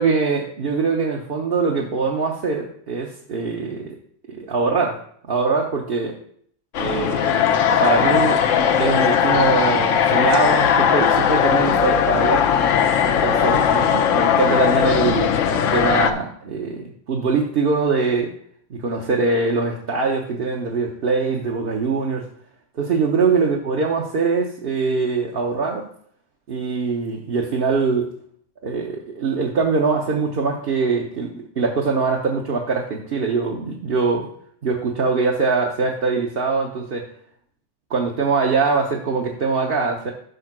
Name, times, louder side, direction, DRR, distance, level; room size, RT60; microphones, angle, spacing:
voice 1, 0.0-3.9 4.3-5.0 5.3-6.2 6.8-7.5 7.8-8.4 8.8-12.5 13.0-18.3 18.7-22.2 22.8-25.9 26.5-28.1 28.6-34.3 34.6-37.1 37.9-40.1, right 4 dB, 50° right, -1 dB, 1.1 m, -22 dB
sound 1, 6.7-16.1, left 8 dB, 75° left, 1.0 m, -18 dB
6.5 x 5.5 x 6.0 m, 0.63 s
omnidirectional pair, 1.3 m